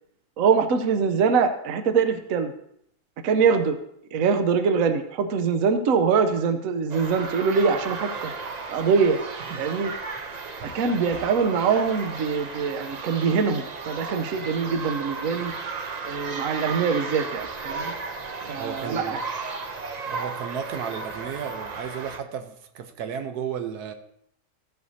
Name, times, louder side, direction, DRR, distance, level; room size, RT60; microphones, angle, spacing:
voice 1, 0.4-2.5 3.2-3.8 4.1-8.3 8.7-9.2 9.6-9.9 10.6-15.5 16.1-17.9 18.5-19.2, right 5 dB, 65° right, 8 dB, 1.1 m, -23 dB
sound 1, 6.9-22.2, right 4 dB, 50° right, 0.5 m, -34 dB
voice 2, 18.6-19.2 20.0-23.9, right 8 dB, 85° right, 7 dB, 1.3 m, -33 dB
15.0 x 7.9 x 2.7 m, 0.71 s
omnidirectional pair, 1.6 m